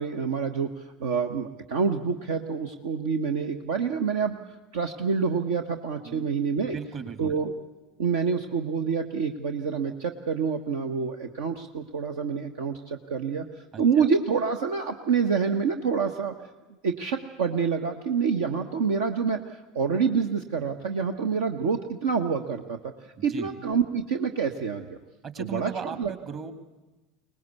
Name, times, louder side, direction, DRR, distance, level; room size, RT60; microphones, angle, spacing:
voice 1, 0.0-4.4 4.7-6.8 7.2-7.5 8.0-13.5 13.8-16.3 16.8-22.9 23.2-25.0 25.4-25.7 26.0-26.1, right 5 dB, 65° right, 5 dB, 1.1 m, -27 dB
voice 2, 6.6-7.4 13.7-14.1 23.2-23.5 25.2-26.5, right 6 dB, 40° right, 10 dB, 2.4 m, -37 dB
23.5 x 19.5 x 8.2 m, 1.1 s
figure-of-eight pair, 70°, 0 cm